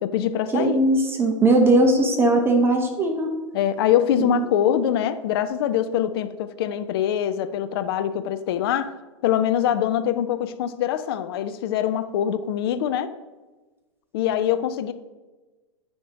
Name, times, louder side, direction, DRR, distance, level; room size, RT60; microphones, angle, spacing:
voice 1, 0.0-0.8 3.5-8.9 9.2-13.1 14.1-14.9, left 10 dB, 50° left, 12 dB, 0.5 m, -24 dB
voice 2, 0.5-3.3 4.2-4.5, right 2 dB, 15° right, 3 dB, 0.9 m, -19 dB
9.9 x 3.6 x 3.8 m, 1.2 s
hypercardioid pair, 115°, 16 cm